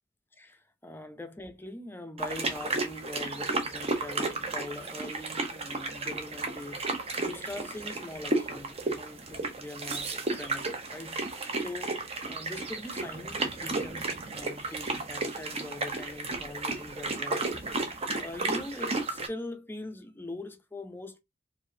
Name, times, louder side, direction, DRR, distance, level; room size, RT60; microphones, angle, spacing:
voice 1, 0.4-14.1 14.3-21.2, left 2 dB, 10° left, 0.5 m, -42 dB
sound 1, 2.2-19.3, right 3 dB, 30° right, 0.7 m, -33 dB
4.4 x 2.7 x 2.7 m
head